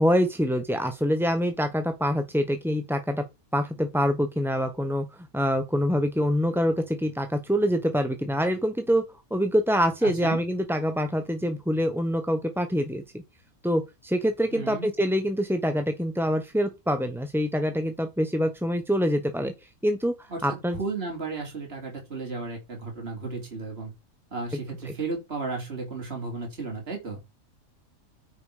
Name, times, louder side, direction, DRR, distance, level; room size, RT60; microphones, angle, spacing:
voice 1, 0.0-3.2 3.5-13.2 13.6-19.5 19.8-20.8, equal, ahead, 0.6 m, -25 dB
voice 2, 10.0-10.4 14.5-14.9 20.3-23.9 24.3-27.2, right 3 dB, 45° right, 3.2 m, -34 dB
9.1 x 5.3 x 4.9 m
omnidirectional pair, 1.5 m